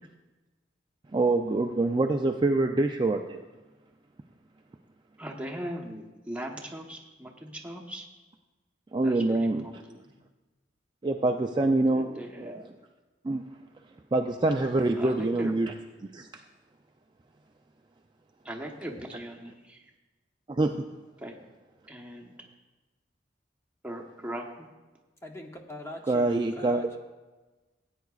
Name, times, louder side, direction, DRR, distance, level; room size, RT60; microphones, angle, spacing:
voice 1, 1.1-3.4 8.9-9.8 11.0-12.6 13.2-13.4 14.1-15.7 16.0-16.4 20.5-20.8 26.1-26.8, right 2 dB, 25° right, 3 dB, 0.4 m, -26 dB
voice 2, 5.2-8.1 9.0-10.1 11.5-12.7 15.0-15.6 18.4-19.9 21.2-21.3 21.9-22.3 23.8-24.7, equal, 5° right, 0 dB, 1.0 m, -40 dB
voice 3, 25.2-27.0, left 1 dB, 15° left, 3 dB, 0.7 m, -43 dB
17.5 x 9.2 x 2.4 m, 1.2 s
head